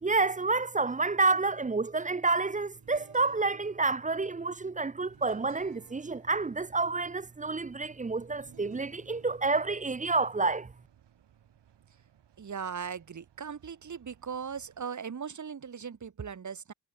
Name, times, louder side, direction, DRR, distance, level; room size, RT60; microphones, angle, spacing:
voice 1, 0.0-10.7, right 3 dB, 20° right, 0.6 m, -29 dB
sound 1, 2.7-13.4, right 8 dB, 60° right, 2.9 m, -59 dB
sound 2, 5.1-14.9, right 10 dB, 80° right, 6.6 m, -64 dB
voice 2, 12.4-16.7, right 6 dB, 45° right, 2.2 m, -38 dB
cardioid pair, 90°, 41 cm